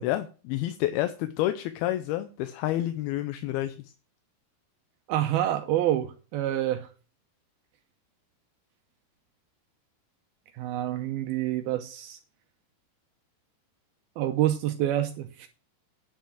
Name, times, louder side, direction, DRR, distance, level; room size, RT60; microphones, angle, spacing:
voice 1, 0.0-3.8, left 14 dB, 80° left, 2.4 m, -29 dB
voice 2, 5.1-6.9 10.6-12.2 14.2-15.5, right 12 dB, 80° right, 2.4 m, -27 dB
10.0 x 5.8 x 7.2 m
omnidirectional pair, 4.7 m